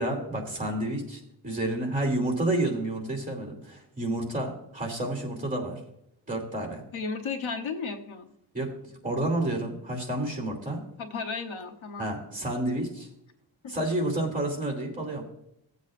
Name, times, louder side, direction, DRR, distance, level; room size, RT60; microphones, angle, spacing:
voice 1, 0.0-5.8 6.3-6.8 8.5-8.7 9.0-10.8 12.0-13.1 13.7-15.2, right 1 dB, 15° right, 2 dB, 2.7 m, -30 dB
voice 2, 6.9-8.3 11.0-12.0 13.6-13.8, left 4 dB, 85° left, 5 dB, 1.1 m, -34 dB
16.5 x 8.2 x 2.5 m, 0.77 s
wide cardioid pair, 125°, 46 cm